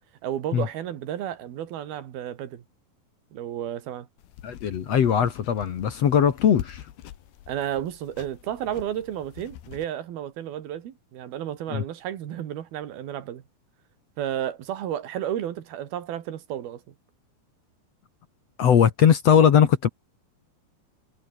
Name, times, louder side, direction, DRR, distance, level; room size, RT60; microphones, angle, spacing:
voice 1, 0.2-2.6 3.3-4.1 7.5-13.4 14.2-16.8, right 11 dB, 70° right, 3.7 m, -32 dB
sound 1, 4.2-9.9, left 12 dB, 75° left, 3.6 m, -44 dB
voice 2, 4.4-6.8 11.7-11.8 18.6-19.9, left 8 dB, 55° left, 2.0 m, -20 dB
omnidirectional pair, 4.8 m